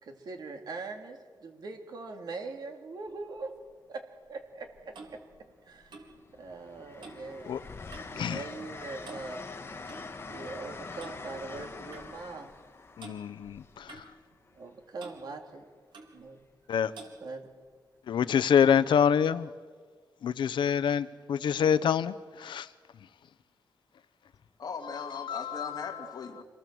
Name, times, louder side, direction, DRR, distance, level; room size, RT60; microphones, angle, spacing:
voice 1, 0.0-3.6 3.9-5.2 5.7-6.0 6.4-7.6 8.1-9.4 10.3-12.5 14.5-15.6 16.1-16.4 17.2-17.5, right 3 dB, 55° right, 3.1 m, -42 dB
Train, 3.1-3.4 4.7-5.4 5.8-14.6 16.2-16.4, left 4 dB, 30° left, 1.7 m, -44 dB
Clock, 4.4-8.3 8.5-8.8 9.0-10.1 11.0-11.2 11.9-12.1 13.0-13.2 13.9-14.7 15.0-15.2 15.9-16.2 16.9-17.2, right 3 dB, 90° right, 4.2 m, -50 dB
voice 2, 13.0-13.9 16.7-16.9 18.1-19.5 20.2-22.1 22.4-22.7 25.2-25.7, left 8 dB, 85° left, 0.8 m, -26 dB
voice 3, 24.6-26.4, left 5 dB, 55° left, 3.1 m, -39 dB
26.5 x 19.0 x 7.8 m
wide cardioid pair, 170°, 8 cm